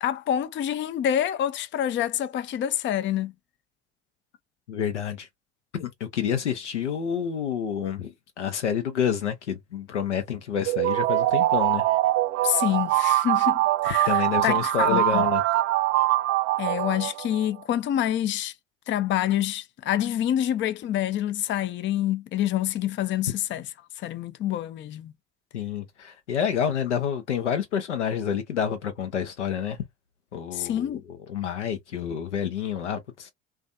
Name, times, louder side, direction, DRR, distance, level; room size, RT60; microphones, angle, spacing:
voice 1, 0.0-3.3 12.4-15.2 16.6-18.5 18.9-23.6 24.0-25.1 30.5-31.0, left 11 dB, 35° left, 0.4 m, -27 dB
voice 2, 4.7-5.3 5.7-11.9 12.4-12.6 14.1-15.4 25.5-29.9 30.3-33.3, left 8 dB, 90° left, 0.7 m, -28 dB
sound 1, 10.7-17.5, right 16 dB, 50° right, 0.5 m, -23 dB
2.5 x 2.3 x 2.3 m
hypercardioid pair, 60°, 34 cm